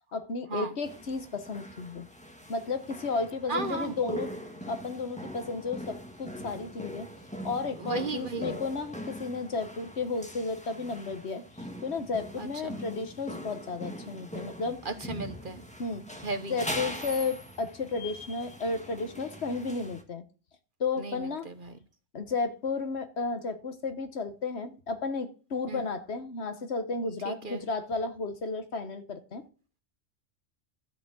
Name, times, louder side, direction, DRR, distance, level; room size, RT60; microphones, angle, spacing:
voice 1, 0.1-2.1 2.5-4.3 4.7-7.1 7.4-11.4 11.8-14.8 15.8-16.0 16.5-20.2 20.8-21.5 22.1-29.4, left 4 dB, 60° left, 1.4 m, -33 dB
sound 1, 0.8-20.0, equal, 5° left, 1.5 m, -42 dB
voice 2, 3.5-3.9 7.8-8.5 12.4-12.8 14.8-15.6 16.2-16.6 21.0-21.7 25.7-25.8 27.2-27.6, right 3 dB, 45° right, 1.1 m, -35 dB
13.0 x 4.9 x 7.7 m
omnidirectional pair, 1.3 m